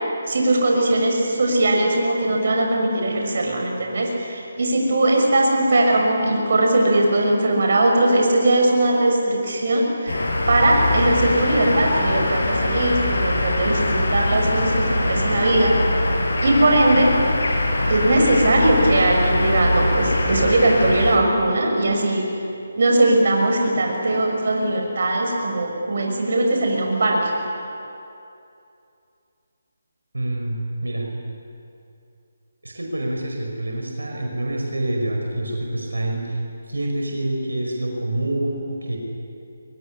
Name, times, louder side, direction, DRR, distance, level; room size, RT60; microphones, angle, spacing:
voice 1, 0.3-15.8 16.4-17.2 17.9-22.3 22.8-27.4, right 1 dB, 60° right, 1 dB, 6.3 m, -20 dB
sound 1, 10.1-21.2, left 1 dB, 75° left, 5.2 m, -22 dB
voice 2, 30.1-31.1 32.6-39.0, right 1 dB, 90° right, 1 dB, 5.5 m, -26 dB
23.5 x 22.0 x 10.0 m, 2.6 s
figure-of-eight pair, 155°, 0 cm